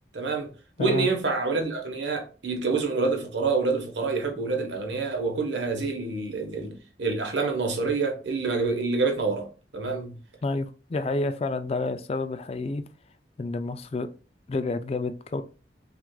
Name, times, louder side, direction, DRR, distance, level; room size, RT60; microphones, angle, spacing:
voice 1, 0.1-0.5 0.8-9.5 9.7-10.2, right 4 dB, 80° right, 1.0 m, -27 dB
voice 2, 0.8-1.1 10.4-12.8 13.4-14.1 14.5-15.4, left 3 dB, 35° left, 0.3 m, -29 dB
5.8 x 2.5 x 2.2 m
head